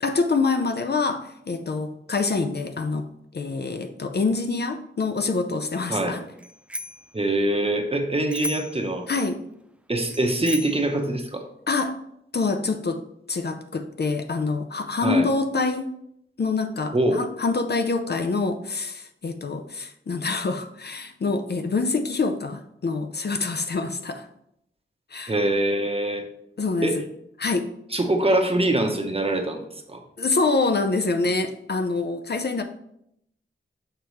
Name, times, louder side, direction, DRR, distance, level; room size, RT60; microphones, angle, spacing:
voice 1, 0.0-3.1 3.3-6.2 9.1-9.4 11.7-12.0 12.3-13.0 13.3-15.9 16.4-24.3 25.1-25.3 26.6-27.0 27.4-27.7 30.2-32.6, left 3 dB, 50° left, 7 dB, 0.5 m, -26 dB
Bicycle bell, 6.4-7.1 8.3-8.9 10.1-10.9, equal, 5° right, 0.3 m, -34 dB
voice 2, 7.1-9.1 9.9-11.4 15.0-15.3 16.9-17.2 25.3-26.2 26.8-27.0 27.9-30.0, right 1 dB, 25° right, 4 dB, 0.9 m, -24 dB
6.7 x 4.5 x 3.1 m, 0.75 s
wide cardioid pair, 65°, 21 cm